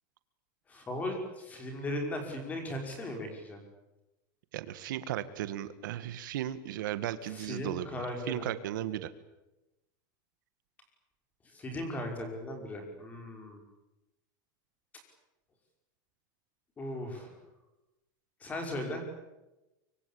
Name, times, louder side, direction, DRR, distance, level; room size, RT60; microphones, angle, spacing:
voice 1, 0.7-3.6 7.3-8.5 11.5-13.6 16.8-17.4 18.4-19.0, left 1 dB, 15° left, 4 dB, 5.7 m, -37 dB
voice 2, 4.5-9.1, right 12 dB, 75° right, 13 dB, 1.7 m, -36 dB
25.0 x 24.0 x 8.6 m, 0.98 s
supercardioid pair, 175°, 11 cm